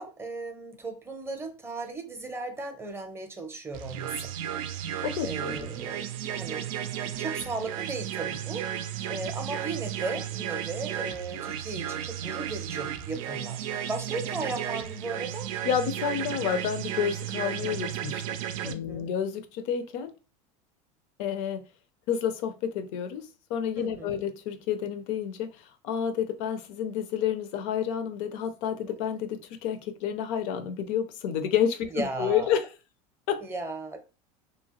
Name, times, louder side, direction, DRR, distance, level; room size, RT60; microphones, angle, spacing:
voice 1, 0.0-4.3 4.9-6.7 7.0-8.7 9.1-15.5 18.6-19.1 23.8-24.2 31.9-32.5 33.4-34.0, right 3 dB, 15° right, 0.6 m, -36 dB
sound 1, 3.7-18.7, right 10 dB, 80° right, 0.4 m, -34 dB
voice 2, 5.0-5.7 15.6-18.4 18.6-20.1 21.2-21.6 22.1-25.5 25.8-32.6 33.3-33.4, left 8 dB, 70° left, 0.5 m, -30 dB
2.7 x 2.1 x 2.9 m
supercardioid pair, 115°, 17 cm